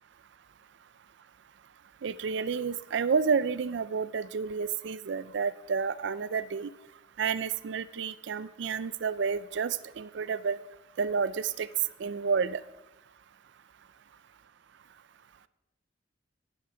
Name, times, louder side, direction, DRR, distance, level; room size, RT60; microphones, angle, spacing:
voice 1, 2.0-6.7 7.2-10.6 11.0-11.7 12.0-12.6, right 5 dB, 65° right, 16 dB, 0.4 m, -30 dB
11.0 x 10.0 x 5.0 m, 1.0 s
head